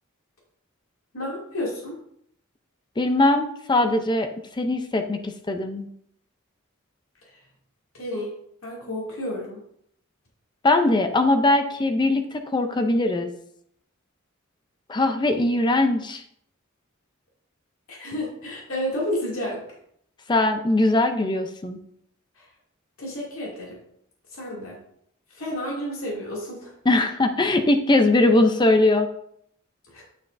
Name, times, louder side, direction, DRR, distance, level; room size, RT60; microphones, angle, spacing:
voice 1, 1.1-2.0 7.9-8.3 8.6-9.6 17.9-19.6 22.4-22.5 23.0-23.8 24.3-24.8 25.3-26.7 29.9-30.0, left 1 dB, 80° left, -4 dB, 2.4 m, -31 dB
voice 2, 3.0-4.3 4.6-5.9 10.6-13.3 14.9-16.2 20.3-21.8 26.9-29.1, left 2 dB, 20° left, 7 dB, 0.5 m, -21 dB
8.4 x 6.9 x 2.6 m, 0.71 s
head